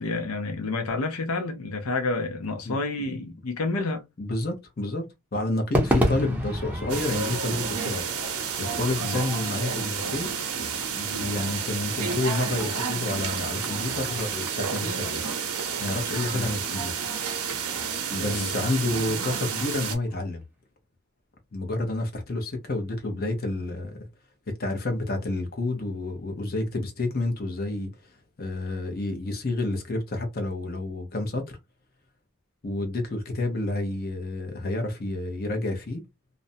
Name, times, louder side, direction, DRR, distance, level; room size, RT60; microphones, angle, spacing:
voice 1, 0.0-4.0 9.0-9.2 16.3-16.5 18.3-18.5, left 3 dB, 80° left, 0.6 m, -29 dB
voice 2, 4.2-5.1 5.3-8.0 8.6-10.3 10.9-15.2 15.8-17.0 18.1-20.4 21.5-24.1 24.6-31.6 32.6-36.0, left 2 dB, 45° left, 0.7 m, -29 dB
Crowd / Fireworks, 5.7-20.1, equal, 5° right, 0.5 m, -34 dB
sound 1, 6.9-20.0, right 6 dB, 85° right, 0.7 m, -30 dB
2.5 x 2.1 x 2.6 m
head